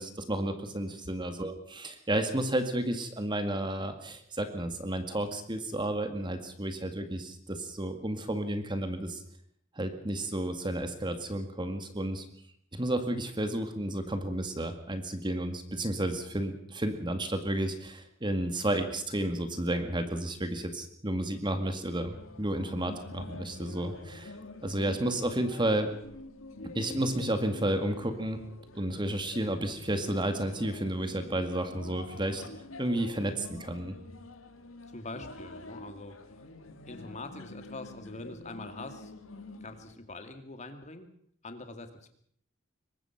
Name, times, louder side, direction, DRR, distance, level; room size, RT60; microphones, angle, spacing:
voice 1, 0.0-9.2 9.8-12.3 12.7-24.3 24.6-25.9 26.7-28.4 28.7-32.4 32.8-34.0, right 1 dB, 25° right, 8 dB, 2.1 m, -32 dB
sound 1, 22.1-40.0, left 2 dB, 85° left, 1.9 m, -47 dB
voice 2, 34.9-36.4 36.8-39.1 39.6-41.1 41.4-42.1, left 2 dB, 35° left, 7 dB, 2.3 m, -44 dB
23.5 x 19.5 x 5.9 m, 0.65 s
head